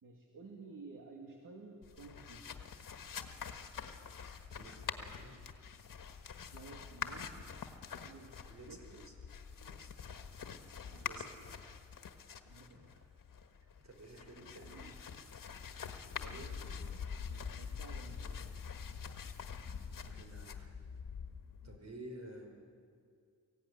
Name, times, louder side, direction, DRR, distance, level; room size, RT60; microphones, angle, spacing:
voice 1, 0.0-2.5 6.5-8.4 8.7-9.0 10.1-10.6 10.9-11.5 12.4-13.1 14.4-14.9 17.3-18.6 21.6-21.9, right 3 dB, 75° right, 0 dB, 2.4 m, -54 dB
sound 1, 1.8-21.8, left 6 dB, 80° left, 1.4 m, -46 dB
voice 2, 4.5-5.4 8.4-9.1 9.5-9.9 10.9-11.4 13.6-14.9 16.0-17.0 20.0-20.7 21.6-22.6, right 1 dB, 55° right, 2 dB, 4.9 m, -53 dB
23.5 x 16.0 x 9.8 m, 2.3 s
wide cardioid pair, 90°, 32 cm